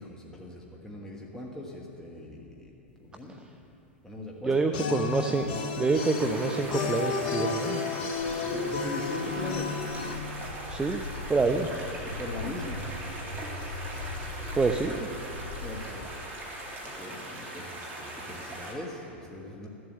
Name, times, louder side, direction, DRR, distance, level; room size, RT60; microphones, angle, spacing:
voice 1, 0.0-2.7 3.0-3.4 4.0-4.6 8.4-9.8 11.5-11.7 12.0-12.8 15.6-16.1 16.8-19.7, left 2 dB, 5° left, -2 dB, 1.5 m, -40 dB
voice 2, 4.4-7.8 10.7-11.0 11.3-11.7 14.6-15.1, right 4 dB, 15° right, 5 dB, 0.6 m, -27 dB
sound 1, 4.7-10.2, left 4 dB, 55° left, 1.1 m, -32 dB
sound 2, 5.8-18.7, right 1 dB, 30° right, 2.8 m, -41 dB
Walk footsteps, 8.1-15.8, left 2 dB, 90° right, 2.9 m, -40 dB
14.0 x 7.9 x 7.8 m, 2.9 s
figure-of-eight pair, 95°, 6 cm